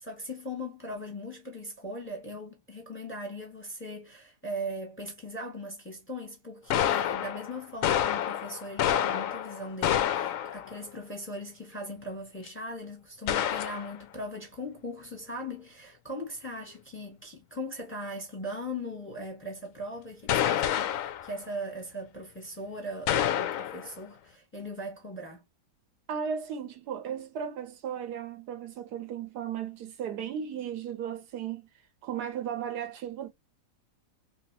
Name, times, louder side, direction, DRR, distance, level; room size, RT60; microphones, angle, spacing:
voice 1, 0.0-25.4, equal, 10° left, 1.0 m, -39 dB
sound 1, 6.7-10.8 12.5-12.6 13.3-13.9 20.3-21.3 23.1-23.9, left 10 dB, 70° left, 0.8 m, -28 dB
voice 2, 26.1-31.7 32.0-33.3, right 8 dB, 75° right, 1.2 m, -35 dB
3.2 x 2.8 x 2.6 m
omnidirectional pair, 1.8 m